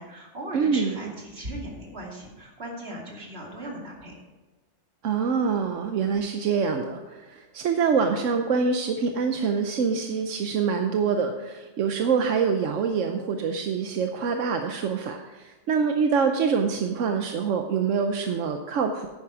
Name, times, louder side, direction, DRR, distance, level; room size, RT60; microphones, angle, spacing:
voice 1, 0.0-4.1, right 1 dB, 55° right, -1 dB, 2.9 m, -38 dB
voice 2, 0.5-1.1 5.0-19.1, right 5 dB, 85° right, 5 dB, 1.1 m, -25 dB
10.5 x 9.4 x 4.9 m, 1.2 s
omnidirectional pair, 1.2 m